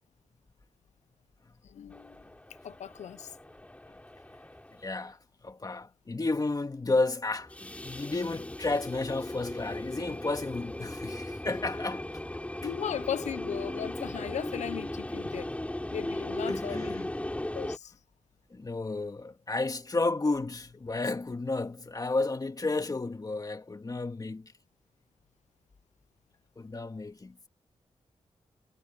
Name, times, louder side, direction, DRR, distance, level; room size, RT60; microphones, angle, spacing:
voice 1, 1.6-2.2 2.6-3.3 12.6-15.5 15.9-17.1 17.5-17.9, left 9 dB, 90° left, 0.6 m, -37 dB
sound 1, 1.9-5.0 7.4-17.8, left 1 dB, 10° left, 3.2 m, -37 dB
voice 2, 4.7-12.2 12.6-12.7 16.5-17.1 18.5-24.5 26.6-27.5, left 3 dB, 30° left, 2.2 m, -32 dB
cardioid pair, 80°, 12 cm